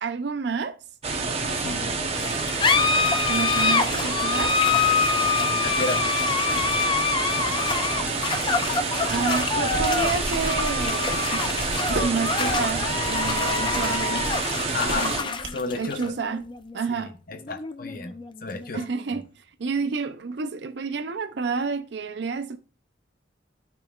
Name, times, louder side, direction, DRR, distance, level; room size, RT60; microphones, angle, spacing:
voice 1, 0.0-0.8 3.3-4.6 9.1-11.5 11.9-14.3 14.9-15.4 15.7-17.2 18.7-19.3 19.6-22.6, right 5 dB, 65° right, 0.5 m, -29 dB
sound 1, 1.0-15.2, right 4 dB, 30° right, 0.8 m, -28 dB
sound 2, 2.2-19.2, left 5 dB, 25° left, 0.5 m, -26 dB
voice 2, 5.1-6.4 14.7-15.1 15.5-16.1 16.9-18.1 18.4-18.8 19.1-19.2, left 3 dB, 50° left, 0.8 m, -33 dB
sound 3, 9.7-15.7, right 2 dB, 85° right, 1.0 m, -35 dB
12.5 x 4.5 x 2.4 m
head